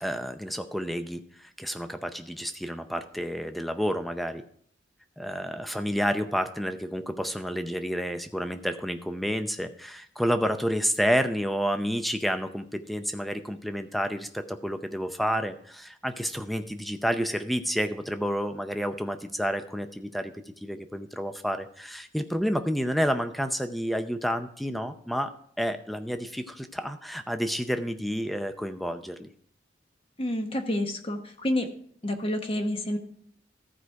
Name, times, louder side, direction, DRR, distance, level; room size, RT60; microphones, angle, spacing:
voice 1, 0.0-4.4 5.2-25.3 25.6-29.3, equal, ahead, 8 dB, 0.6 m, -30 dB
voice 2, 30.2-31.7 32.0-33.0, left 1 dB, 30° left, 5 dB, 1.0 m, -28 dB
14.5 x 4.9 x 4.6 m, 0.62 s
head